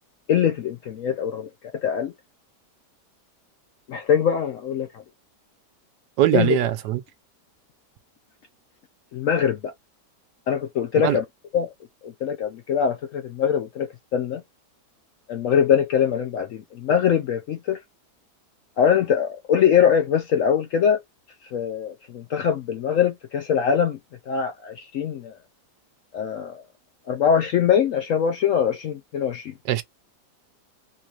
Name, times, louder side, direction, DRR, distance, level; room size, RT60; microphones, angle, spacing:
voice 1, 0.3-1.5 1.8-2.1 3.9-4.9 6.3-6.6 9.1-9.7 10.5-11.2 11.5-11.7 12.0-14.4 15.3-17.8 18.8-21.0 21.5-24.0 24.3-25.4 26.1-26.6 27.1-29.5, left 8 dB, 70° left, 0.7 m, -22 dB
voice 2, 6.2-7.0 11.0-11.2 29.7-29.8, right 13 dB, 85° right, 1.2 m, -21 dB
3.8 x 2.9 x 2.4 m
omnidirectional pair, 1.8 m